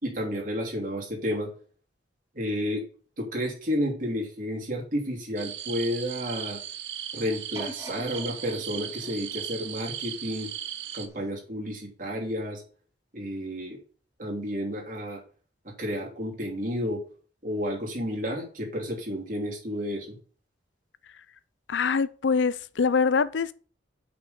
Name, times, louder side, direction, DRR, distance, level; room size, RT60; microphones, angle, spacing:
voice 1, 0.0-1.5 2.3-2.9 3.2-6.6 7.1-10.5 10.9-12.6 13.1-13.8 14.2-15.2 15.6-17.0 17.4-20.2, equal, 45° right, 2.9 m, -31 dB
sound 1, 5.4-11.1, right 9 dB, 85° right, 1.0 m, -37 dB
sound 2, 7.5-10.6 11.2-11.3, right 1 dB, 15° right, 2.9 m, -45 dB
voice 2, 21.7-23.5, left 5 dB, 80° left, 0.5 m, -24 dB
6.1 x 5.8 x 6.9 m
head